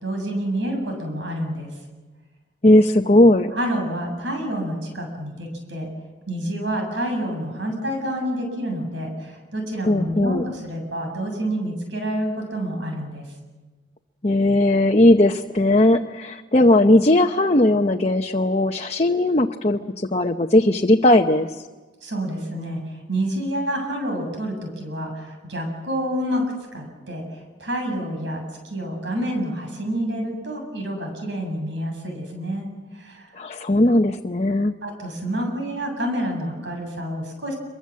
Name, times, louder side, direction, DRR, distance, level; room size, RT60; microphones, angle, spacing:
voice 1, 0.0-1.7 3.5-5.9 6.3-13.3 22.0-22.8 23.1-32.7 32.9-33.3 34.8-37.5, right 1 dB, 75° right, 3 dB, 7.7 m, -28 dB
voice 2, 2.6-3.5 9.9-10.5 14.2-21.5 33.4-34.7, left 1 dB, 35° left, 3 dB, 0.8 m, -17 dB
27.0 x 23.5 x 7.6 m, 1.3 s
head